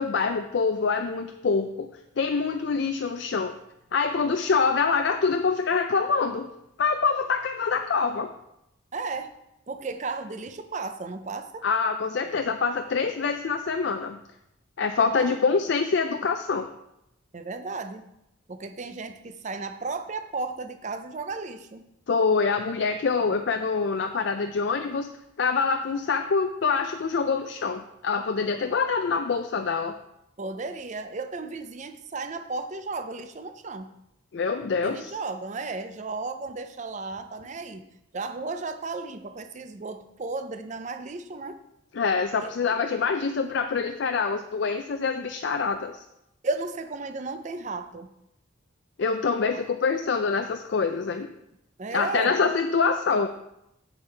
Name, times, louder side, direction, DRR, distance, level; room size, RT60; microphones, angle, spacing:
voice 1, 0.0-1.9 2.2-3.6 3.9-6.5 6.8-8.3 11.6-14.2 14.8-16.7 22.1-25.1 25.4-30.0 34.3-35.1 41.9-46.0 49.0-51.3 51.9-53.3, left 5 dB, 60° left, 7 dB, 0.4 m, -25 dB
voice 2, 8.9-9.3 9.7-11.7 15.1-15.4 17.3-18.1 18.5-21.9 30.4-33.9 34.8-37.9 38.1-41.6 42.4-42.8 46.4-48.1 51.8-52.5, right 3 dB, 35° right, 9 dB, 0.5 m, -34 dB
8.1 x 7.1 x 3.3 m, 0.84 s
head